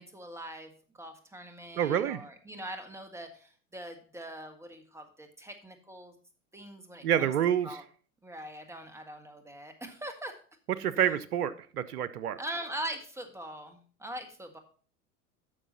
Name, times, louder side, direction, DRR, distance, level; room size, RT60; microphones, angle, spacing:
voice 1, 0.0-6.1 6.5-7.3 7.6-7.8 8.2-10.4 12.4-14.6, right 1 dB, 5° right, 5 dB, 1.6 m, -42 dB
voice 2, 1.8-2.2 7.0-7.8 10.8-12.4, right 9 dB, 85° right, 16 dB, 0.8 m, -28 dB
10.0 x 6.6 x 4.0 m, 0.42 s
hypercardioid pair, 90°, 45 cm